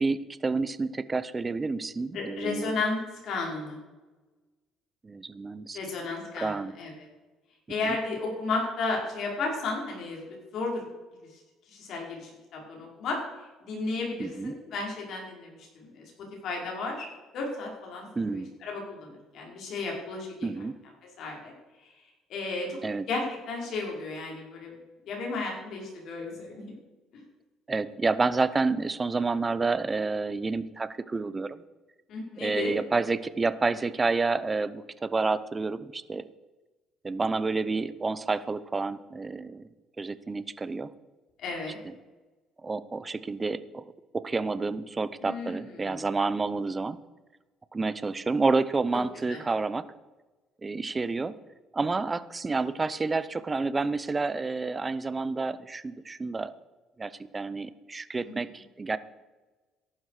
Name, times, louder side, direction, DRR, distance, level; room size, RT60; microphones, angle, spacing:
voice 1, 0.0-2.7 5.0-5.8 6.4-6.7 7.8-8.0 14.2-14.5 18.2-18.5 20.4-20.8 22.8-23.1 27.7-31.6 32.4-36.3 37.0-39.7 40.0-40.9 41.8-42.0 42.6-43.8 44.1-47.0 47.7-49.9 50.6-51.4 51.7-56.5 57.0-59.0, right 3 dB, 20° right, 15 dB, 0.7 m, -29 dB
voice 2, 2.1-3.0 3.2-3.8 5.7-6.9 7.7-10.8 11.7-13.2 13.6-15.7 15.9-16.1 16.4-17.1 17.3-20.5 21.2-21.5 22.3-22.8 23.1-24.7 25.1-26.7 27.1-27.2 32.1-32.7 41.4-41.8 45.2-46.0 49.3-49.4 58.2-58.3, left 3 dB, 60° left, -1 dB, 5.1 m, -33 dB
14.0 x 11.5 x 4.9 m, 1.2 s
cardioid pair, 110°, 0 cm